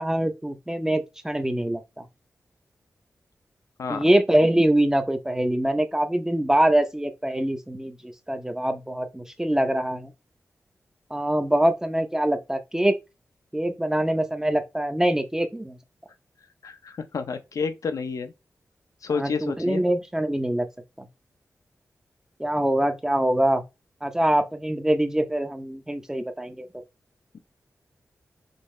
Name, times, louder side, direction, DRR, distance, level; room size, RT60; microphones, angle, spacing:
voice 1, 0.0-2.0 3.9-10.1 11.1-13.0 13.5-15.8 19.1-20.7 21.0-21.1 22.4-23.6 24.0-26.7, right 1 dB, 10° right, 0.8 m, -24 dB
voice 2, 16.6-18.3 19.0-19.8, left 5 dB, 80° left, 0.8 m, -30 dB
5.4 x 3.0 x 3.2 m
cardioid pair, 70°, 6 cm